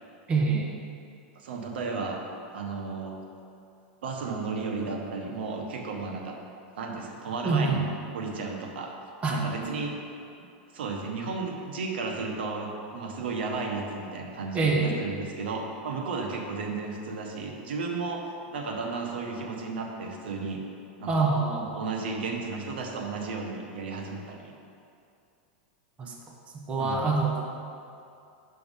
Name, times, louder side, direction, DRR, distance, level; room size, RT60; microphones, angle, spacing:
voice 1, 0.3-0.7 7.4-7.8 9.2-9.7 14.5-15.0 21.1-21.7 26.0-26.1 26.7-27.5, right 4 dB, 20° right, -1 dB, 1.0 m, -26 dB
voice 2, 1.3-2.2 2.5-3.2 4.0-6.4 6.8-7.9 8.1-8.9 9.3-10.0 10.7-20.6 21.0-21.3 21.7-24.5 26.8-27.1, right 4 dB, 85° right, 2 dB, 1.0 m, -33 dB
6.1 x 5.8 x 5.4 m, 2.6 s
supercardioid pair, 150°, 5 cm